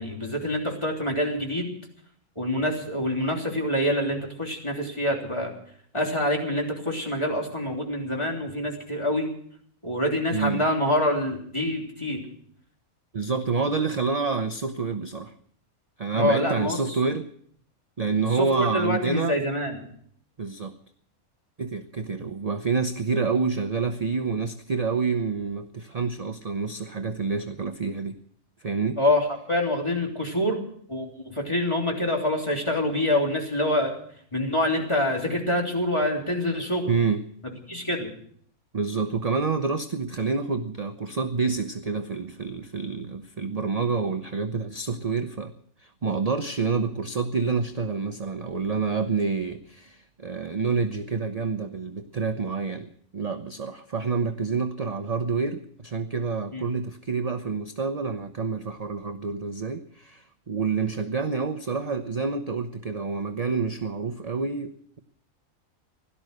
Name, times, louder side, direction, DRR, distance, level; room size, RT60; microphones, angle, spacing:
voice 1, 0.0-1.7 2.4-5.5 5.9-9.3 9.8-12.2 16.2-17.0 18.3-19.8 29.0-30.6 30.9-34.0 34.3-36.9 37.4-38.1 56.5-56.6, left 1 dB, 20° left, 0 dB, 3.3 m, -26 dB
voice 2, 10.3-10.6 13.1-15.3 16.0-17.3 18.0-19.4 20.4-20.7 21.6-28.2 28.6-29.0 36.9-37.2 38.7-45.5 45.8-65.0, right 4 dB, 35° right, 8 dB, 0.7 m, -28 dB
17.0 x 12.5 x 6.5 m, 0.63 s
omnidirectional pair, 1.5 m